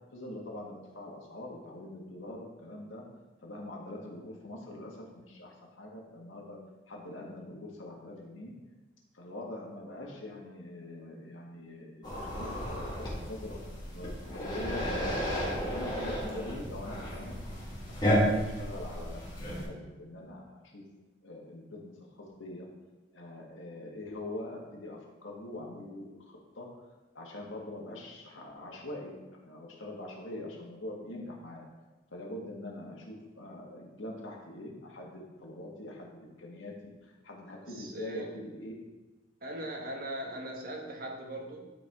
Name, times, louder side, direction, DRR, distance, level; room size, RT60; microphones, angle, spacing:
voice 1, 0.1-3.0 3.4-6.6 6.9-8.5 9.1-13.6 13.9-15.3 15.7-17.3 18.1-19.2 19.6-20.8 21.2-21.9 22.2-22.7 23.1-26.7 27.1-31.7 32.1-38.8, left 1 dB, 85° left, -1 dB, 1.8 m, -43 dB
sound 1, 12.0-19.7, equal, 20° left, 1.9 m, -33 dB
voice 2, 37.6-38.3 39.4-41.7, right 1 dB, 50° right, 1 dB, 1.2 m, -40 dB
12.0 x 4.6 x 3.6 m, 1.2 s
head